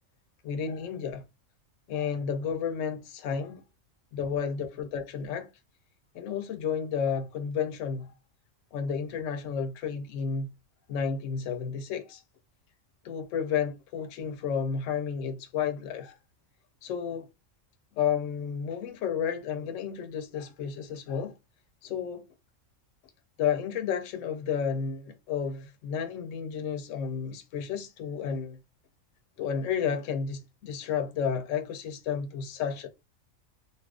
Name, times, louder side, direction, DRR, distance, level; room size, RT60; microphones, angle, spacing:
voice 1, 0.4-1.3 1.9-3.6 4.1-5.5 6.1-8.1 8.7-10.5 10.9-12.2 13.0-16.1 16.8-17.3 17.9-21.4 21.8-22.2 23.4-28.6 29.4-32.9, left 7 dB, 75° left, 1.0 m, -32 dB
2.7 x 2.4 x 3.4 m
omnidirectional pair, 1.3 m